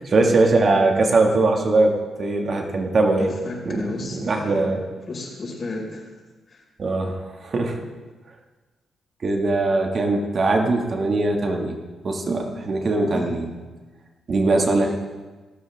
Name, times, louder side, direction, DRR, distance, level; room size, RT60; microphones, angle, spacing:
voice 1, 0.1-3.3 3.7-4.8 6.8-7.8 9.2-11.8 12.0-13.5 14.3-15.0, right 2 dB, 45° right, 2 dB, 2.0 m, -21 dB
voice 2, 3.2-4.6 5.1-6.1 6.5-6.6 13.0-13.3, left 2 dB, 40° left, -2 dB, 5.6 m, -34 dB
28.0 x 13.5 x 3.6 m, 1.3 s
cardioid pair, 115°, 0 cm